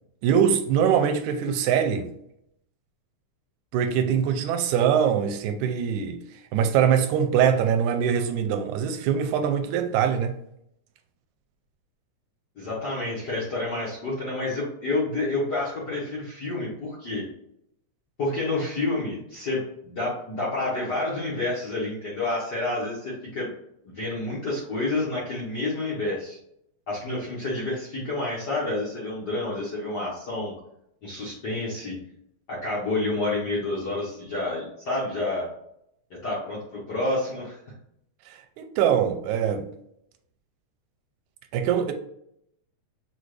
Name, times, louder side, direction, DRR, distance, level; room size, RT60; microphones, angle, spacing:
voice 1, 0.2-2.1 3.7-6.2 6.5-10.4 38.3-39.7 41.5-41.9, right 8 dB, 80° right, 1.9 m, -23 dB
voice 2, 12.6-17.2 18.2-23.5 23.8-26.4 26.9-30.5 31.0-31.9 32.5-35.5 36.1-37.6, left 2 dB, 55° left, 1.2 m, -29 dB
6.1 x 2.5 x 3.2 m
omnidirectional pair, 3.4 m